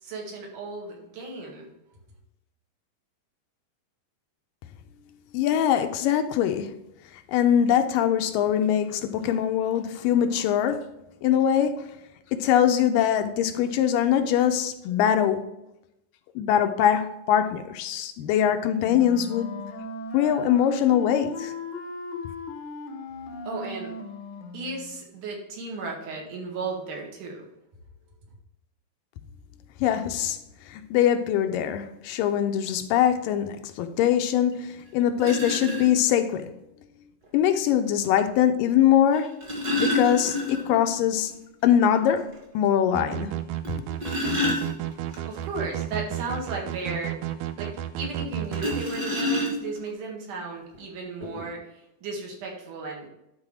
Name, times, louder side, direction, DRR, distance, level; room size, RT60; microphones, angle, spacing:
voice 1, 0.0-1.7 23.4-23.9 24.5-27.5 45.3-47.1 47.6-53.1, right 3 dB, 65° right, -1 dB, 3.2 m, -35 dB
voice 2, 5.3-6.7 7.1-10.8 11.2-11.8 12.3-15.5 16.4-19.5 20.1-21.5 29.8-30.4 30.7-36.5 37.3-39.3 39.7-41.3 41.6-42.2 42.5-43.4, left 9 dB, 80° left, 8 dB, 2.2 m, -22 dB
Wind instrument woodwind instrument, 18.8-25.0, left 3 dB, 60° left, 1.3 m, -38 dB
sound 1, 34.5-34.6 35.2-35.8 37.2-37.3 39.1-40.9 41.2-41.3 41.7-41.8 42.3-42.4 43.6-45.2 48.5-49.9 50.7-50.8 51.2-51.4, left 1 dB, 35° right, 1.9 m, -28 dB
sound 2, 42.9-48.9, right 12 dB, 85° right, 1.7 m, -32 dB
11.5 x 4.0 x 4.9 m, 0.86 s
omnidirectional pair, 4.0 m